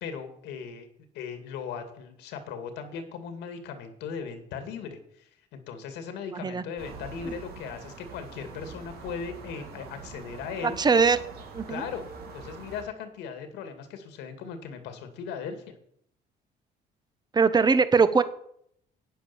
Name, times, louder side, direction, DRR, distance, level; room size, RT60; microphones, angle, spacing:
voice 1, 0.0-0.9 1.1-10.8 11.7-12.0 12.3-15.7, left 6 dB, 90° left, 7 dB, 2.2 m, -38 dB
voice 2, 6.3-6.6 10.6-11.2 11.5-11.8 17.3-18.2, right 5 dB, 25° right, 13 dB, 1.1 m, -21 dB
sound 1, 6.8-12.8, right 4 dB, 65° right, 2.8 m, -44 dB
10.5 x 9.4 x 7.1 m, 0.70 s
cardioid pair, 110°, 17 cm